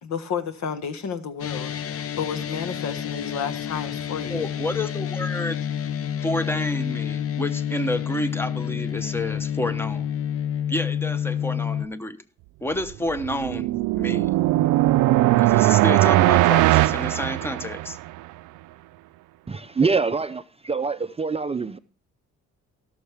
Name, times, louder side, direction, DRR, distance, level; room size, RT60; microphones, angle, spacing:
voice 1, 0.0-4.5, left 7 dB, 65° left, 1.5 m, -31 dB
sound 1, 1.4-11.9, left 9 dB, 50° left, 0.7 m, -29 dB
voice 2, 4.3-5.6 6.2-10.1 10.7-12.2 12.6-14.4 15.4-18.0, left 1 dB, 10° left, 1.0 m, -29 dB
sound 2, 12.9-18.1, right 17 dB, 85° right, 0.5 m, -19 dB
voice 3, 19.5-21.8, right 4 dB, 20° right, 0.5 m, -25 dB
18.0 x 6.5 x 3.5 m
cardioid pair, 90°, 30 cm